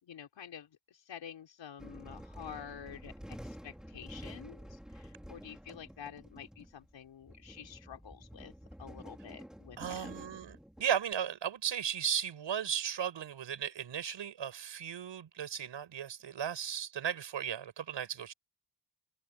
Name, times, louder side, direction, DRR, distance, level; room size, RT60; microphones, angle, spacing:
voice 1, 0.0-8.5 8.8-10.4, left 8 dB, 85° left, 4.9 m, -49 dB
sound 1, 1.8-10.8, equal, ahead, 3.5 m, -49 dB
voice 2, 9.8-18.3, right 8 dB, 80° right, 7.5 m, -36 dB
wide cardioid pair, 115°, 43 cm